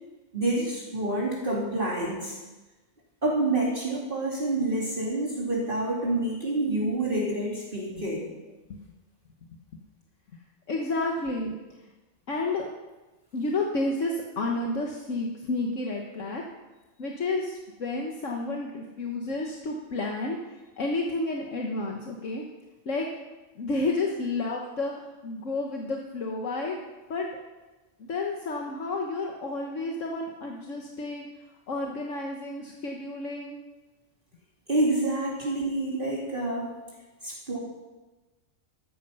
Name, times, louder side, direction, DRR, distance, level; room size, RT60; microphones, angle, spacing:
voice 1, 0.3-2.4 3.2-8.3 34.7-36.7 37.2-37.6, right 2 dB, 40° right, -5 dB, 2.9 m, -28 dB
voice 2, 10.7-11.9 12.3-12.7 13.3-16.4 17.0-22.4 22.8-23.1 23.5-26.8 27.1-27.3 28.0-31.3 31.7-33.6, left 2 dB, 70° left, 0 dB, 1.6 m, -31 dB
14.0 x 13.5 x 5.5 m, 1.2 s
omnidirectional pair, 1.4 m